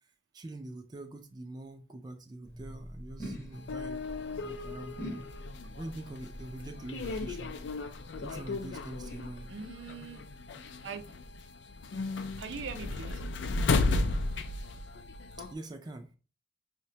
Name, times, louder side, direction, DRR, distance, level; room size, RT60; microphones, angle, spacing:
voice 1, 0.3-4.0 4.3-5.0 5.7-9.5 15.4-16.1, right 2 dB, 25° right, 0.3 m, -44 dB
sound 1, 2.4-9.7, equal, 15° left, 0.6 m, -45 dB
sound 2, 3.5-15.5, left 3 dB, 75° left, 0.4 m, -35 dB
voice 2, 9.5-10.2 10.8-11.0 12.4-13.2, right 5 dB, 85° right, 0.5 m, -41 dB
4.9 x 2.1 x 2.7 m
head